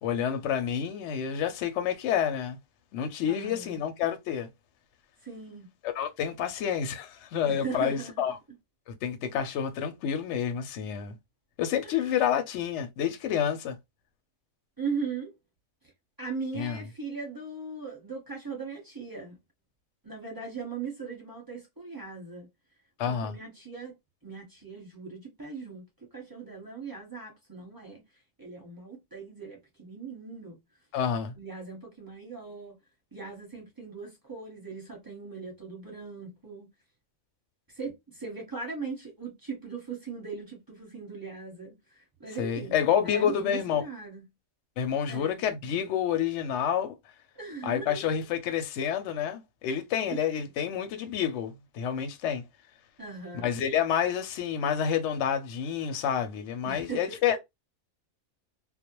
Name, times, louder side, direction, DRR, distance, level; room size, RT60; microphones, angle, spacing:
voice 1, 0.0-2.6 2.9-4.5 6.0-8.4 8.9-11.1 11.6-13.8 16.5-16.8 23.0-23.3 30.9-31.3 42.4-43.8 44.8-46.9 47.6-52.4 53.3-57.4, left 8 dB, 65° left, 0.8 m, -29 dB
voice 2, 3.3-3.8 5.2-5.7 7.4-8.2 11.8-12.1 14.8-15.3 16.2-19.4 20.0-22.5 23.1-23.9 24.2-25.8 26.1-28.0 28.4-30.6 31.4-32.8 33.1-36.7 37.7-42.8 43.0-44.2 45.1-45.4 47.3-48.0 50.1-50.2 53.0-53.5 56.6-57.4, right 4 dB, 20° right, 0.8 m, -39 dB
2.3 x 2.0 x 2.9 m
omnidirectional pair, 1.4 m